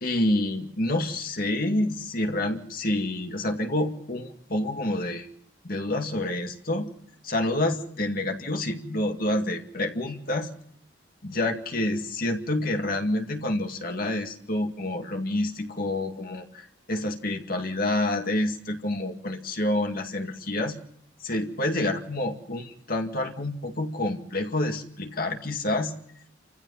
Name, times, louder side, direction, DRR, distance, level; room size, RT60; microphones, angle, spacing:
voice 1, 0.0-5.3 5.6-6.9 7.2-10.5 11.2-20.8 21.2-25.9, left 1 dB, 50° left, 4 dB, 2.2 m, -28 dB
30.0 x 15.5 x 5.7 m, 0.69 s
head